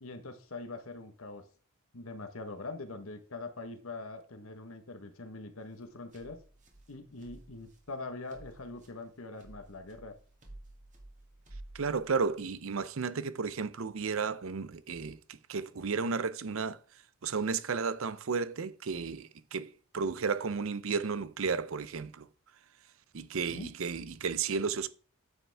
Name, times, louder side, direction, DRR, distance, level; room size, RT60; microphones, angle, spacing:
voice 1, 0.0-1.4 1.9-6.4 6.9-10.1 23.5-23.7, left 3 dB, 70° left, 1.2 m, -43 dB
sound 1, 5.6-12.5, right 1 dB, 35° right, 1.9 m, -53 dB
voice 2, 11.7-16.8 17.2-22.3 23.1-24.9, right 5 dB, 65° right, 0.6 m, -33 dB
8.9 x 6.9 x 3.4 m
head